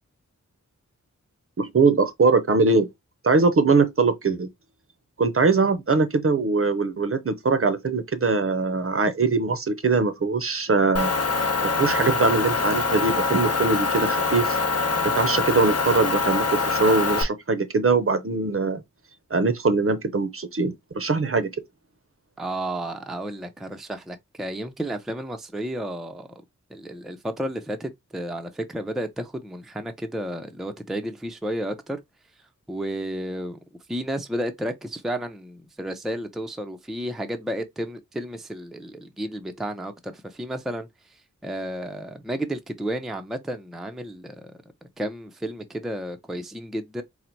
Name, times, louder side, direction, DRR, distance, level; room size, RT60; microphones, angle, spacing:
voice 1, 1.6-2.9 3.2-4.5 5.2-11.1 11.6-14.6 15.0-18.8 19.3-21.5, right 4 dB, 45° right, 0.6 m, -22 dB
Motor vehicle (road) / Engine, 11.0-17.2, left 4 dB, 50° left, 0.8 m, -24 dB
voice 2, 22.4-26.3 26.7-32.0 32.7-33.6 33.9-44.5 45.0-47.0, right 1 dB, ahead, 0.5 m, -32 dB
4.0 x 2.0 x 4.4 m
wide cardioid pair, 85°, 31 cm